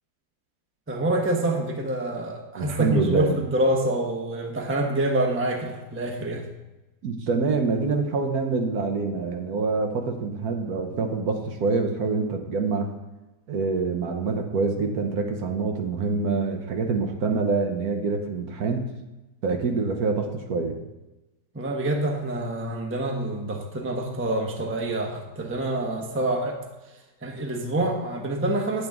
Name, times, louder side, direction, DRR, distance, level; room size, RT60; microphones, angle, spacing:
voice 1, 0.9-6.4 21.5-26.6 27.2-28.9, right 1 dB, 10° right, 1 dB, 0.7 m, -26 dB
voice 2, 2.6-3.3 7.0-12.9 13.5-18.8 19.4-20.8, right 4 dB, 65° right, 4 dB, 1.3 m, -26 dB
9.0 x 8.0 x 3.6 m, 1.0 s
omnidirectional pair, 1.8 m